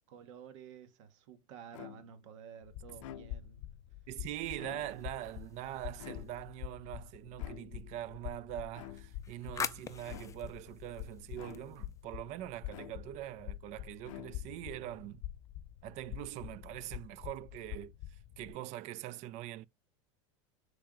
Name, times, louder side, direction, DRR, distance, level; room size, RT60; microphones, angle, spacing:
voice 1, 0.1-3.6, right 8 dB, 70° right, 1.0 m, -52 dB
sound 1, 1.7-2.3 2.9-3.6 4.5-5.2 6.0-6.7 7.4-8.0 8.7-9.3 10.0-10.6 11.4-12.0 12.7-13.4 14.0-14.7, left 12 dB, 85° left, 0.5 m, -51 dB
sound 2, 2.6-18.5, left 13 dB, 55° left, 0.8 m, -47 dB
voice 2, 4.1-15.2 15.8-17.9 18.4-19.7, right 14 dB, 50° right, 0.4 m, -43 dB
sound 3, 4.8-6.5 8.8-12.1, left 6 dB, 20° left, 0.4 m, -45 dB
3.7 x 3.4 x 3.5 m
supercardioid pair, 115°, 16 cm